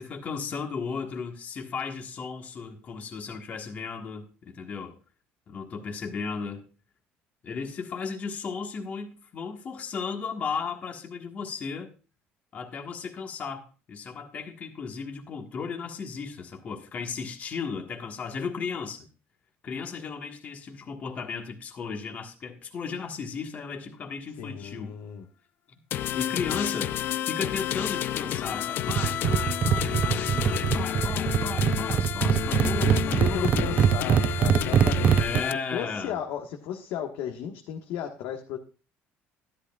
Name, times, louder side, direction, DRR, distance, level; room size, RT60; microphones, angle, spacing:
voice 1, 0.0-5.0 5.5-6.6 7.4-11.9 12.5-19.1 19.6-24.9 25.7-25.8 26.1-27.0 27.3-34.0 35.2-36.1, left 5 dB, 35° left, 1.5 m, -35 dB
voice 2, 24.4-25.2 32.7-35.4 35.7-38.6, left 9 dB, 85° left, 1.4 m, -34 dB
sound 1, 25.9-35.5, left 12 dB, 55° left, 0.4 m, -30 dB
sound 2, 28.9-35.4, right 8 dB, 35° right, 0.4 m, -24 dB
13.0 x 11.5 x 2.3 m
cardioid pair, 145°, 4 cm